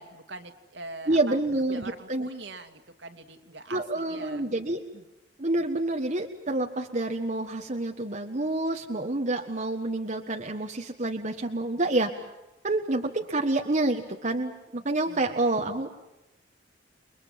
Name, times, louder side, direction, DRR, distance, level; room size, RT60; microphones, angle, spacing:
voice 1, 0.0-1.4 1.7-4.5 4.9-5.0 15.1-15.4, right 2 dB, 65° right, 6 dB, 2.5 m, -43 dB
voice 2, 1.1-2.3 3.7-4.8 5.4-12.2 12.6-15.9, right 2 dB, 40° right, 3 dB, 1.5 m, -28 dB
30.0 x 22.5 x 7.5 m, 0.94 s
head